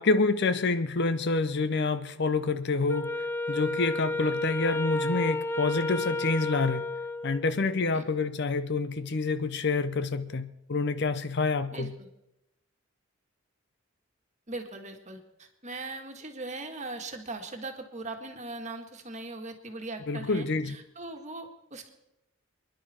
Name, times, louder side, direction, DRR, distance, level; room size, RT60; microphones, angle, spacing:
voice 1, 0.0-3.2 3.5-6.9 7.2-11.9 20.1-20.8, left 3 dB, 55° left, 12 dB, 0.7 m, -27 dB
Wind instrument woodwind instrument, 2.9-7.5, left 2 dB, 10° left, 0.5 m, -31 dB
voice 2, 11.7-12.1 14.5-21.9, right 2 dB, 35° right, 4 dB, 1.7 m, -40 dB
27.5 x 10.5 x 4.3 m, 0.87 s
head